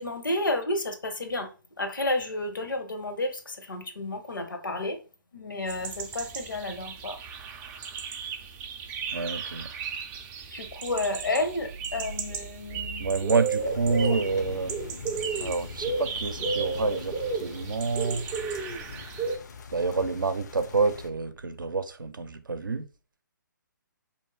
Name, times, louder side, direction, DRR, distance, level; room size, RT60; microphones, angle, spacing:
voice 1, 0.0-5.0 5.3-7.2 10.5-13.1 14.0-14.3, left 2 dB, 75° left, 1.0 m, -31 dB
sound 1, 5.7-19.4, right 4 dB, 15° right, 0.4 m, -34 dB
voice 2, 9.1-9.7 13.0-14.7 15.4-17.1 17.4-18.2 19.7-22.8, right 4 dB, 80° right, 0.6 m, -28 dB
sound 2, 13.6-21.1, left 5 dB, 55° left, 0.5 m, -42 dB
4.3 x 2.7 x 3.1 m
figure-of-eight pair, 135°, 11 cm